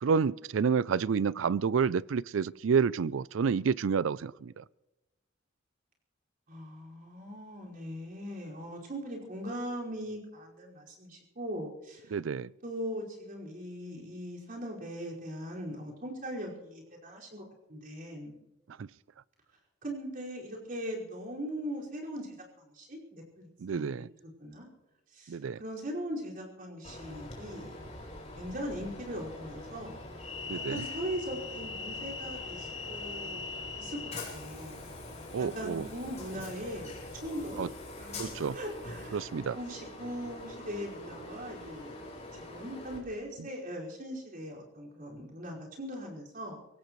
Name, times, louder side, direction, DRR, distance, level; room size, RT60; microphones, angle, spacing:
voice 1, 0.0-4.6 12.1-12.5 18.8-18.9 23.6-24.1 25.3-25.6 30.5-30.8 35.3-35.9 37.6-37.7 38.2-38.6 39.1-39.6, right 6 dB, 80° right, 21 dB, 0.4 m, -29 dB
voice 2, 6.5-12.2 12.6-18.3 19.8-24.0 24.2-24.7 25.1-27.8 28.4-30.0 30.7-33.5 33.8-34.9 35.4-37.7 38.0-39.3 39.5-42.0 42.5-46.6, equal, 50° right, -3 dB, 5.2 m, -40 dB
Train, 26.8-43.0, left 3 dB, 35° left, 4.5 m, -42 dB
23.5 x 17.0 x 3.1 m, 0.97 s
head